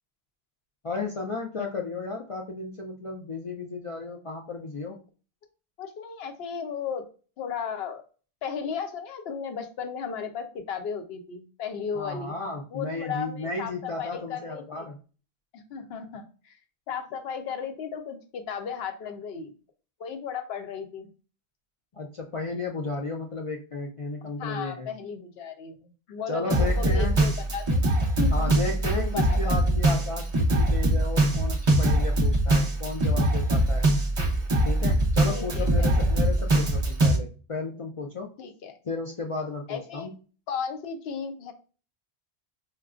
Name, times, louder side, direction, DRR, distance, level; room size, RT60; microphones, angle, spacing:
voice 1, 0.8-5.0 11.9-15.0 21.9-24.9 26.3-27.2 28.3-33.9 34.6-38.3 38.9-40.1, left 3 dB, 55° left, 1 dB, 0.3 m, -34 dB
voice 2, 5.8-7.1 7.4-8.0 8.4-12.4 12.7-14.9 15.5-16.6 16.9-19.5 20.0-21.1 24.4-27.8 28.2-28.5 29.0-29.8 35.2-36.5 38.4-38.8 39.7-40.1 40.5-41.5, left 6 dB, 75° left, 7 dB, 0.8 m, -35 dB
Drum kit, 26.5-37.2, right 1 dB, 35° right, 0.6 m, -22 dB
4.5 x 2.1 x 2.4 m, 0.36 s
omnidirectional pair, 1.1 m